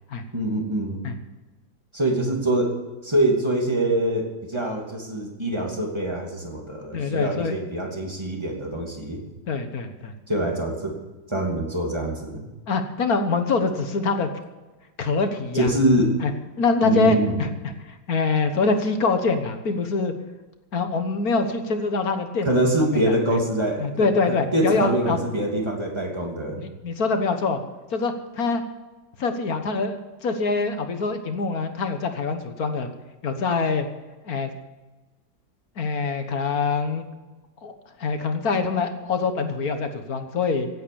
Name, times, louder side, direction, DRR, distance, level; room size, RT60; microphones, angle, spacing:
voice 1, 0.3-1.0 1.9-2.7 3.0-9.2 10.3-10.9 11.3-12.4 15.5-16.1 16.8-17.4 22.4-26.6, right 1 dB, 15° right, 0 dB, 2.7 m, -24 dB
voice 2, 6.9-7.6 9.5-10.1 12.7-14.3 15.0-15.7 16.2-16.3 16.6-17.5 17.9-20.1 20.7-22.5 22.8-23.2 23.8-25.2 26.6-27.6 27.9-28.6 29.2-32.9 33.2-33.9 34.2-34.5 35.8-37.1 37.6-37.7 38.0-40.7, left 4 dB, 55° left, 7 dB, 1.7 m, -24 dB
16.0 x 8.8 x 7.0 m, 1.2 s
omnidirectional pair, 2.0 m